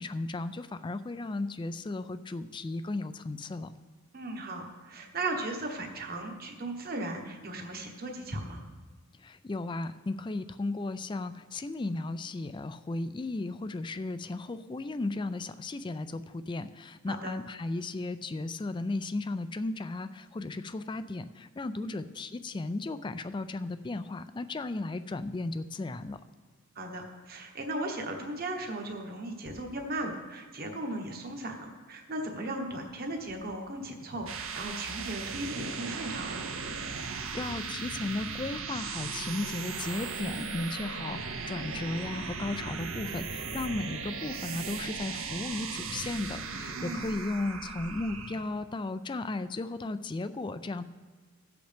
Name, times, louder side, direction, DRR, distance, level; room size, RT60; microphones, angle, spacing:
voice 1, 0.0-3.7 9.1-26.2 37.0-50.8, left 2 dB, 20° left, 12 dB, 0.3 m, -35 dB
voice 2, 4.1-8.6 17.1-17.4 21.7-21.9 26.7-36.5 46.7-47.0, right 2 dB, 45° right, 2 dB, 1.3 m, -37 dB
sound 1, 34.0-48.5, right 5 dB, 70° right, 0.8 m, -37 dB
15.5 x 7.8 x 3.5 m, 1.4 s
head